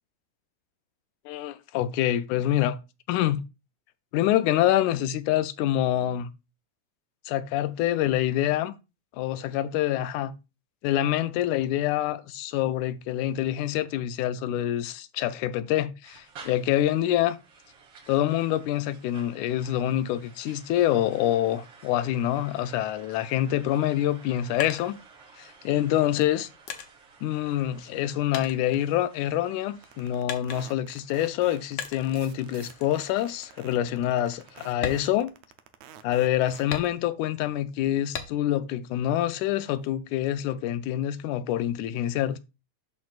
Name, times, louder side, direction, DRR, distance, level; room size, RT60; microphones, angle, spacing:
voice 1, 1.3-2.8 3.1-3.4 4.1-6.3 7.3-8.8 9.1-10.3 10.8-17.4 18.1-25.0 25.4-26.5 27.2-35.3 36.0-42.4, left 12 dB, 80° left, 2.0 m, -26 dB
sound 1, 16.0-35.2, right 4 dB, 55° right, 2.5 m, -53 dB
sound 2, 24.1-25.6 26.2-28.0 28.3-29.5 30.3-30.9 31.8-32.3 32.7-33.0 33.4-33.5 33.9-34.1 34.7-35.9 36.7-37.4 38.1-38.7 39.1-39.9, left 7 dB, 65° left, 1.5 m, -38 dB
sound 3, 29.8-36.9, right 11 dB, 75° right, 1.6 m, -49 dB
12.0 x 4.1 x 2.4 m
omnidirectional pair, 3.5 m